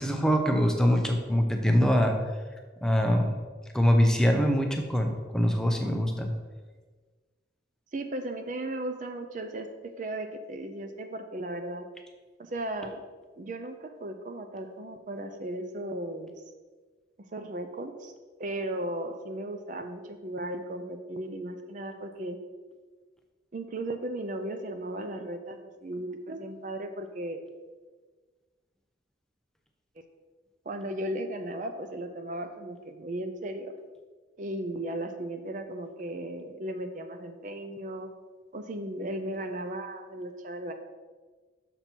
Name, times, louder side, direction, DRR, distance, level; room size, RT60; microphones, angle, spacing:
voice 1, 0.0-2.1 2.8-3.3 3.7-6.3, equal, 5° left, 3 dB, 0.6 m, -23 dB
voice 2, 7.9-11.9 12.4-13.0 13.4-16.3 17.2-18.1 18.4-22.4 23.5-27.4 30.7-33.7 34.4-38.1 38.5-40.7, right 1 dB, 40° right, 7 dB, 0.5 m, -36 dB
6.7 x 5.9 x 4.4 m, 1.4 s
head